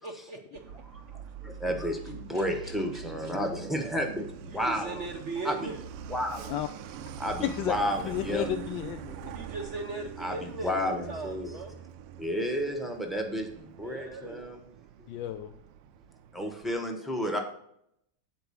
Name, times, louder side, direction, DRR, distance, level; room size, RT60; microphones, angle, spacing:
voice 1, 0.0-0.6 2.3-3.0 4.5-5.8 9.3-11.8 13.8-14.4, right 3 dB, 60° right, 2 dB, 0.7 m, -39 dB
Truck, 0.6-16.8, right 7 dB, 85° right, 1.5 m, -44 dB
voice 2, 1.1-5.0 5.4-5.7 6.1-6.5 7.2-8.5 10.2-11.5 12.2-14.6 16.3-17.4, equal, ahead, 2 dB, 0.6 m, -32 dB
voice 3, 7.4-7.7 8.1-9.4 15.1-15.5, left 12 dB, 75° left, 8 dB, 1.1 m, -33 dB
9.2 x 4.6 x 6.9 m, 0.73 s
omnidirectional pair, 2.4 m